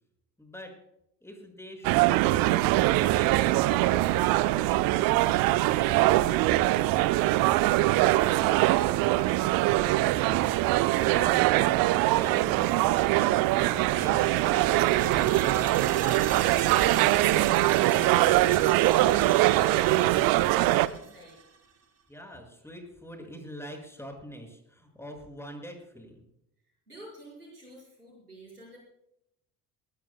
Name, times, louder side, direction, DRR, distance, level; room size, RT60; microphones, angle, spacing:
voice 1, 0.4-0.8 1.2-4.9 5.2-6.2 10.3-16.1 22.1-26.2, equal, 5° left, 3 dB, 6.0 m, -44 dB
sound 1, 1.8-20.9, right 17 dB, 50° right, 0.7 m, -23 dB
sound 2, 13.6-21.4, right 7 dB, 35° right, 2.2 m, -37 dB
voice 2, 16.6-21.4 26.9-28.8, right 1 dB, 90° right, -3 dB, 5.4 m, -48 dB
20.5 x 19.5 x 2.2 m, 0.78 s
figure-of-eight pair, 55°, 45 cm